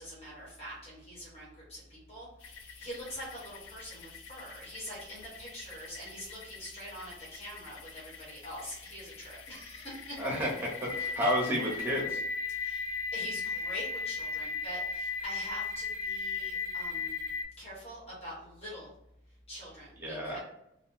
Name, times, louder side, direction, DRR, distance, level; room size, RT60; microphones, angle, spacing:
voice 1, 0.0-10.5 12.5-17.2 17.6-18.9 19.5-20.4, equal, 30° left, -7 dB, 1.2 m, -45 dB
sound 1, 2.4-17.4, left 4 dB, 65° left, 0.3 m, -38 dB
voice 2, 10.2-10.5 10.8-12.2 20.0-20.4, equal, 10° right, -4 dB, 0.9 m, -31 dB
2.6 x 2.2 x 3.6 m, 0.78 s
head